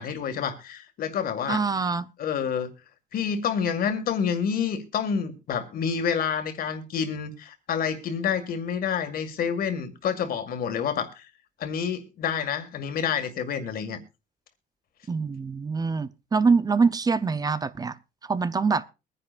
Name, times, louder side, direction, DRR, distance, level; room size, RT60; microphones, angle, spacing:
voice 1, 0.0-1.6 2.2-2.7 3.1-11.3 11.6-14.0, left 7 dB, 60° left, 2.1 m, -28 dB
voice 2, 1.5-2.1 15.1-18.0 18.3-18.8, right 4 dB, 20° right, 0.6 m, -24 dB
22.5 x 10.0 x 2.5 m
cardioid pair, 110°, 17 cm